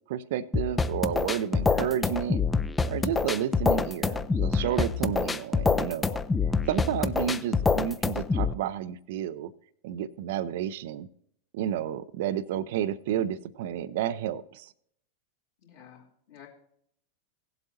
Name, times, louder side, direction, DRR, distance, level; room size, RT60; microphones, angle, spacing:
voice 1, 0.1-2.4 2.9-6.2 6.7-9.5 9.8-11.1 11.5-14.7, right 10 dB, 55° right, 17 dB, 0.4 m, -31 dB
sound 1, 0.5-8.5, left 4 dB, 10° left, 0.4 m, -26 dB
voice 2, 15.6-16.5, left 9 dB, 55° left, -3 dB, 2.7 m, -52 dB
18.0 x 7.9 x 2.8 m, 0.68 s
figure-of-eight pair, 90°, 0 cm